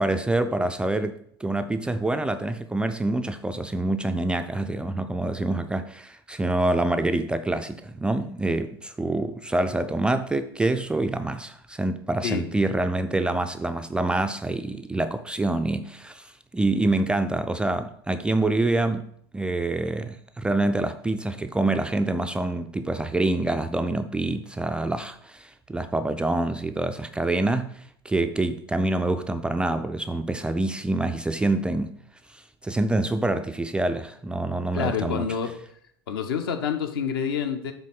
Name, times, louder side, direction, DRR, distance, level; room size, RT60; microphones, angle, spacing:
voice 1, 0.0-19.0 19.3-32.0 32.3-35.3, right 2 dB, 5° right, 0.3 m, -26 dB
voice 2, 34.7-35.5 36.1-37.7, left 7 dB, 60° left, 1.0 m, -27 dB
7.3 x 3.7 x 5.8 m
figure-of-eight pair, 85°, 13 cm